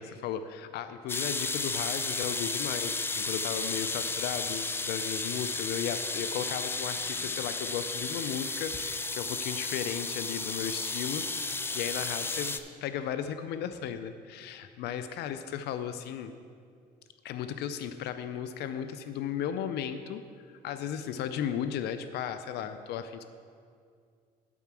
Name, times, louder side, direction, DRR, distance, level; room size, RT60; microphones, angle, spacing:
voice 1, 0.0-16.3 17.2-20.2 20.6-23.3, left 8 dB, 75° left, 10 dB, 0.5 m, -35 dB
sound 1, 1.1-12.6, left 3 dB, 15° left, 0.4 m, -33 dB
7.2 x 5.7 x 7.4 m, 2.2 s
cardioid pair, 110°, 17 cm